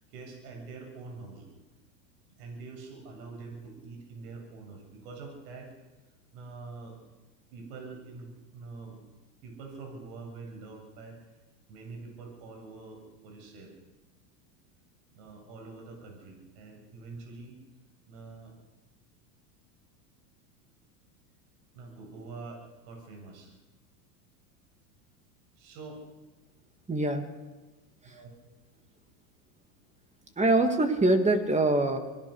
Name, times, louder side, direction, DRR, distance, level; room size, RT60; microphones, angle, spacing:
voice 1, 0.1-1.5 2.4-5.7 6.3-7.0 7.5-9.0 9.4-11.2 11.7-13.7 15.2-17.6 18.1-18.5 21.7-23.5 25.6-26.0 28.0-28.3 30.4-30.5, right 3 dB, 65° right, 2 dB, 7.7 m, -45 dB
voice 2, 26.9-27.2 28.0-28.2 30.4-32.0, right 2 dB, 15° right, 6 dB, 2.8 m, -24 dB
25.5 x 18.0 x 6.6 m, 1.2 s
supercardioid pair, 115°, 47 cm